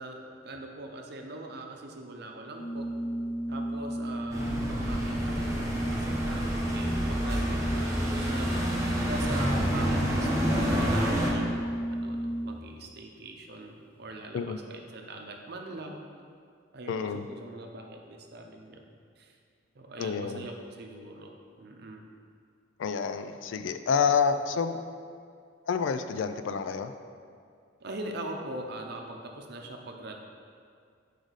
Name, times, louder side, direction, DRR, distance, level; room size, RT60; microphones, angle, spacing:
voice 1, 0.0-2.9 3.5-8.5 9.0-16.0 16.7-18.9 19.2-19.3 19.7-22.1 27.8-30.1, right 2 dB, 60° right, 2 dB, 0.7 m, -42 dB
Organ, 2.5-12.8, right 1 dB, 10° left, 0.5 m, -33 dB
sound 1, 4.3-11.3, equal, 15° right, 0.9 m, -29 dB
voice 2, 16.9-17.2 20.0-20.5 22.8-24.8 25.7-26.9, left 6 dB, 85° left, 10 dB, 0.3 m, -28 dB
6.3 x 5.0 x 4.0 m, 2.2 s
head